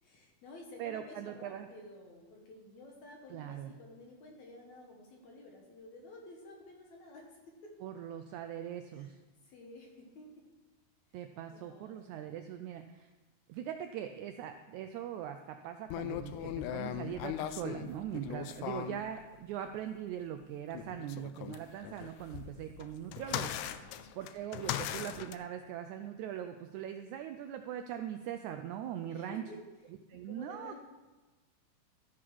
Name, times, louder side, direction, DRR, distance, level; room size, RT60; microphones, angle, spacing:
voice 1, 0.0-7.7 8.9-9.1 9.4-10.4 11.1-11.2 11.5-12.5 18.0-18.4 22.4-22.6 23.8-24.0 29.1-29.6 30.1-30.8, left 2 dB, 65° left, 0 dB, 2.3 m, -52 dB
voice 2, 0.8-1.7 3.3-3.8 7.8-9.2 11.1-13.1 13.5-23.5 24.2-29.4 30.1-30.7, right 10 dB, 80° right, 7 dB, 1.7 m, -41 dB
sound 1, 15.9-19.0 20.7-25.3, left 11 dB, 85° left, 1.6 m, -39 dB
14.0 x 5.9 x 4.6 m, 1.2 s
omnidirectional pair, 3.8 m